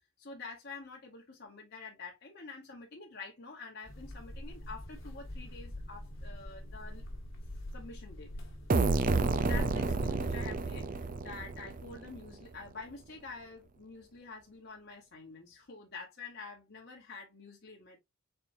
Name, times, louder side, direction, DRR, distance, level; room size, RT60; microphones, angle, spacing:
voice 1, 0.2-7.0 7.7-8.3 9.2-18.0, left 4 dB, 50° left, 1.2 m, -47 dB
sound 1, 3.8-10.1, left 1 dB, 70° left, 1.5 m, -43 dB
sound 2, 8.7-12.3, right 3 dB, 40° right, 0.4 m, -30 dB
4.5 x 4.2 x 2.6 m
head